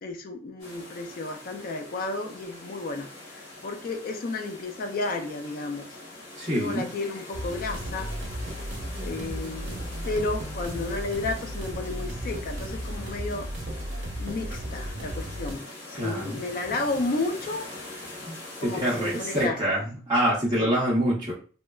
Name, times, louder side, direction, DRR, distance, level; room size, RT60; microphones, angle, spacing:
voice 1, 0.0-6.0 6.4-8.1 9.0-13.5 14.2-17.7 18.6-19.8 20.5-20.7, left 3 dB, 50° left, 6 dB, 0.4 m, -32 dB
sound 1, 0.6-19.5, left 2 dB, 85° left, 1.0 m, -43 dB
voice 2, 6.4-6.9 15.9-16.4 18.3-21.3, equal, 25° right, -7 dB, 0.7 m, -26 dB
sound 2, 7.3-15.5, equal, 75° right, 0.7 m, -35 dB
3.0 x 2.1 x 2.3 m, 0.39 s
head